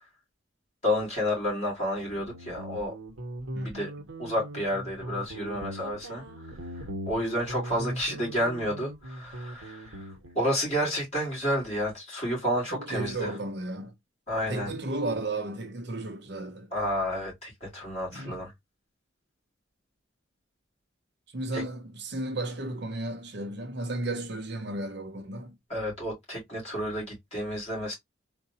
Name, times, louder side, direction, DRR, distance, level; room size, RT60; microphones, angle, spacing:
voice 1, 0.8-2.9 3.7-3.9 4.2-6.2 7.1-10.0 10.4-13.3 14.3-14.7 16.7-18.5 21.5-21.6 25.7-27.9, equal, 30° left, 2.1 m, -30 dB
Guitar, 2.0-10.4, right 1 dB, 85° right, 0.9 m, -39 dB
voice 2, 12.7-13.9 14.5-16.7 18.1-18.5 21.3-25.5, right 2 dB, 55° right, 0.7 m, -34 dB
3.8 x 2.2 x 2.7 m
head